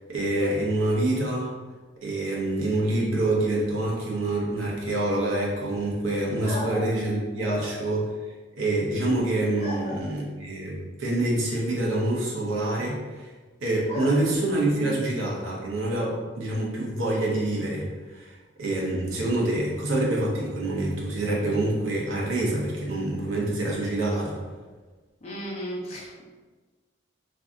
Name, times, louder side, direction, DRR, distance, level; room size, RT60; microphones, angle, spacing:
voice 1, 0.1-1.5 2.0-8.1 8.6-13.3 13.6-24.4, right 1 dB, 85° right, -3 dB, 0.8 m, -26 dB
voice 2, 6.4-6.9 7.4-7.6 9.6-10.0 13.9-14.1 14.6-14.9 25.2-26.2, left 1 dB, 35° left, -6 dB, 0.7 m, -34 dB
2.6 x 2.3 x 3.6 m, 1.3 s
head